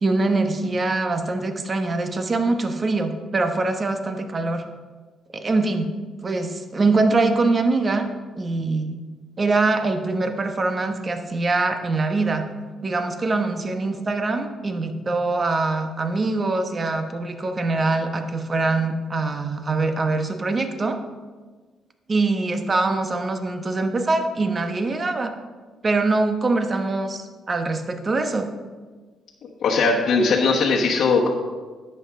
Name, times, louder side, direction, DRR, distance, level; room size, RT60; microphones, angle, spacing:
voice 1, 0.0-4.6 5.3-5.9 6.2-8.1 8.4-9.0 9.4-12.5 12.8-21.0 22.1-25.3 25.8-28.5, right 3 dB, 35° right, 6 dB, 1.0 m, -23 dB
voice 2, 29.6-31.3, left 4 dB, 70° left, -4 dB, 1.2 m, -19 dB
11.0 x 7.8 x 3.7 m, 1.4 s
cardioid pair, 90°, 0 cm